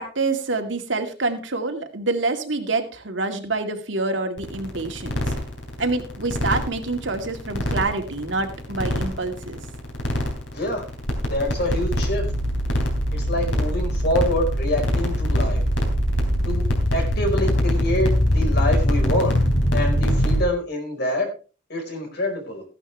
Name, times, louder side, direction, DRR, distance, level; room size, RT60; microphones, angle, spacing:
voice 1, 0.0-5.2 5.8-9.6, right 3 dB, 85° right, 4 dB, 2.1 m, -26 dB
sound 1, 4.4-20.4, equal, 85° left, 3.7 m, -23 dB
voice 2, 10.5-10.8 11.3-12.3 13.1-15.6 16.4-16.7 16.9-19.4 19.7-21.3 21.7-22.6, left 1 dB, 60° left, 3 dB, 4.7 m, -26 dB
15.0 x 11.5 x 3.4 m, 0.35 s
head